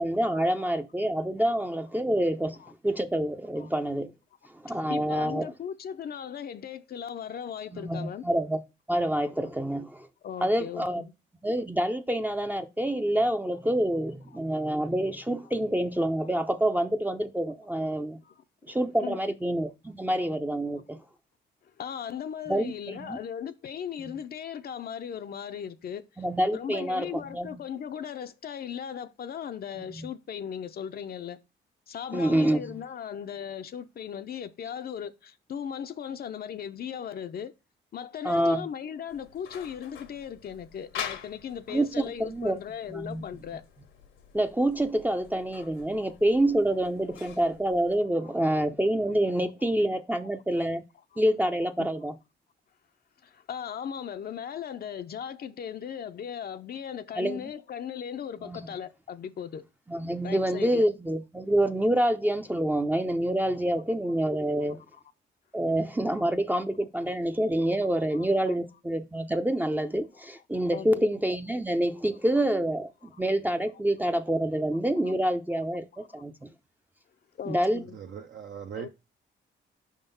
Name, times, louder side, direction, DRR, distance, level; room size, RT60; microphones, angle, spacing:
voice 1, 0.0-4.1 4.5-5.5 7.7-8.6 8.9-10.1 10.4-11.0 11.4-18.2 18.7-21.0 22.5-23.2 24.0-24.1 26.2-27.6 29.8-30.1 32.1-32.7 38.2-38.7 41.7-42.6 42.9-43.2 44.3-50.8 51.2-52.1 57.2-57.5 58.4-58.6 59.9-64.8 65.5-76.5 77.5-77.8, right 1 dB, 10° right, 0.5 m, -27 dB
voice 2, 4.7-8.2 10.2-11.1 14.3-14.4 18.2-19.3 21.8-26.1 26.5-31.4 31.9-37.5 37.9-43.6 48.2-48.4 51.1-51.2 51.8-51.9 53.2-59.6 60.2-60.8 66.1-66.2 67.8-68.6 70.7-70.9 76.0-76.1 77.4-78.0 78.8-78.9, left 8 dB, 50° left, 0.5 m, -38 dB
sound 1, 39.1-48.0, left 8 dB, 80° left, 1.1 m, -45 dB
voice 3, 77.9-78.9, right 8 dB, 60° right, 0.6 m, -40 dB
5.2 x 3.6 x 5.4 m
cardioid pair, 90°, 20 cm